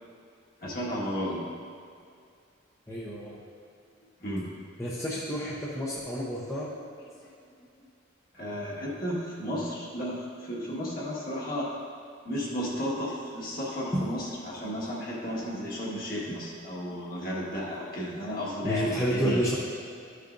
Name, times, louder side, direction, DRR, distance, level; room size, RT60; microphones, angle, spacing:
voice 1, 0.6-1.4 4.2-4.5 8.3-11.7 12.2-19.4, equal, 45° left, -5 dB, 1.6 m, -33 dB
voice 2, 2.9-3.4 4.8-6.7 13.9-14.0 18.6-19.6, equal, 15° left, -7 dB, 0.8 m, -29 dB
12.5 x 6.6 x 2.6 m, 2.4 s
head